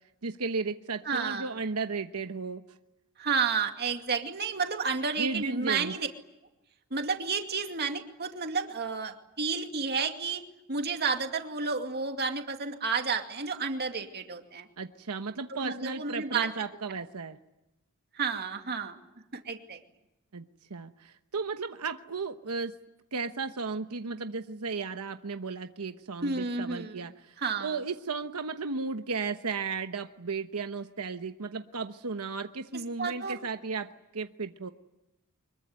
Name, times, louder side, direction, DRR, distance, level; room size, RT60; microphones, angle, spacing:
voice 1, 0.2-2.6 5.2-5.9 14.8-17.4 20.3-20.4 20.7-22.7 23.1-27.3 27.6-34.7, right 4 dB, 90° right, 7 dB, 1.1 m, -34 dB
voice 2, 1.1-1.5 3.2-6.1 6.9-10.4 10.7-14.7 15.5-16.5 18.1-19.0 19.4-19.8 26.2-27.0 27.4-27.8 33.0-33.4, right 5 dB, 45° right, 5 dB, 2.4 m, -31 dB
24.5 x 22.5 x 9.6 m, 0.95 s
head